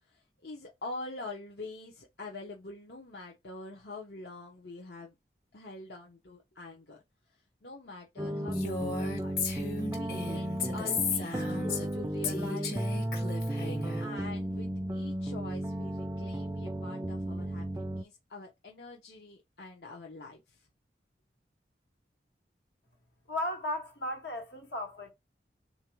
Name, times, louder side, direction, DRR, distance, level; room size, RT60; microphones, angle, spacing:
voice 1, 0.1-5.2 5.5-7.0 7.3-9.4 9.9-12.9 13.6-20.7, left 2 dB, 70° left, 0.9 m, -45 dB
sound 1, 8.2-18.0, right 1 dB, 15° right, 0.3 m, -34 dB
Female speech woman speaking, 8.5-11.9 12.2-14.0, left 4 dB, 55° left, 1.4 m, -34 dB
voice 2, 23.3-25.1, left 1 dB, 90° left, 1.7 m, -35 dB
3.8 x 2.8 x 4.6 m
head